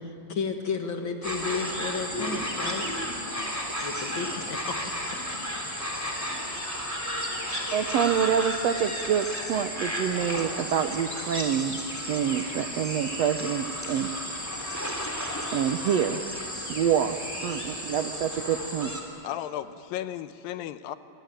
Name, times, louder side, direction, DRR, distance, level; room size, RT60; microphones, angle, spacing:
voice 1, 0.0-2.9 3.8-4.8, left 5 dB, 45° left, 4 dB, 1.8 m, -32 dB
sound 1, 1.2-19.0, equal, 5° left, 2.6 m, -33 dB
sound 2, 4.6-15.9, equal, 25° right, 4.9 m, -50 dB
voice 2, 7.7-11.8 12.1-14.1 15.5-16.2 16.7-18.9, right 8 dB, 85° right, 8 dB, 1.4 m, -27 dB
voice 3, 19.2-21.0, left 12 dB, 80° left, 12 dB, 2.4 m, -34 dB
26.0 x 21.0 x 9.1 m, 2.9 s
omnidirectional pair, 4.2 m